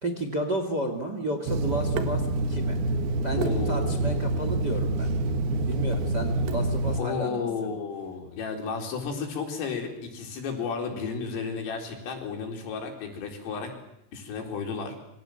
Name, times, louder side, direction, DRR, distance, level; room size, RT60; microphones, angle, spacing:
voice 1, 0.0-2.8 3.2-5.1 5.6-7.7, right 1 dB, 30° right, 7 dB, 1.9 m, -32 dB
Water tap faucet / Sink (filling or washing), 1.5-7.0, right 2 dB, 65° right, 3.0 m, -27 dB
voice 2, 3.4-4.5 7.0-13.7 14.1-15.0, left 5 dB, 90° left, 3 dB, 6.7 m, -33 dB
27.5 x 25.5 x 7.9 m, 0.81 s
omnidirectional pair, 5.7 m